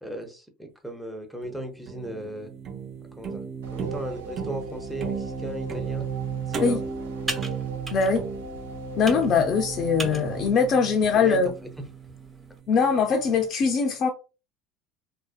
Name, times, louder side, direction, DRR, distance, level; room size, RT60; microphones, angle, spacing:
voice 1, 0.0-2.5 3.1-3.4 3.7-6.1 6.4-6.8 11.1-11.5, right 1 dB, ahead, 0.7 m, -36 dB
sound 1, 1.4-12.6, right 6 dB, 45° right, 0.6 m, -35 dB
sound 2, 3.6-10.5, right 1 dB, 90° right, 0.4 m, -41 dB
Computer keyboard, 5.8-12.6, right 1 dB, 25° right, 1.1 m, -41 dB
voice 2, 7.9-8.2 9.0-11.5 12.7-14.1, left 5 dB, 50° left, 0.4 m, -22 dB
2.5 x 2.1 x 2.4 m
hypercardioid pair, 85°, 0 cm